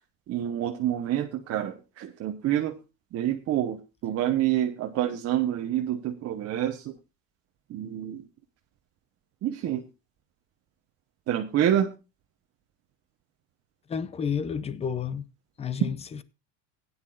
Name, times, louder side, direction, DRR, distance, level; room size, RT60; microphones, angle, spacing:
voice 1, 0.3-2.7 3.1-6.9 7.7-8.2 9.4-9.9 11.3-11.9, right 11 dB, 40° right, 1.0 m, -27 dB
voice 2, 13.9-15.2 15.6-16.2, left 7 dB, 15° left, 0.5 m, -31 dB
17.0 x 9.7 x 2.4 m
cardioid pair, 135°, 38 cm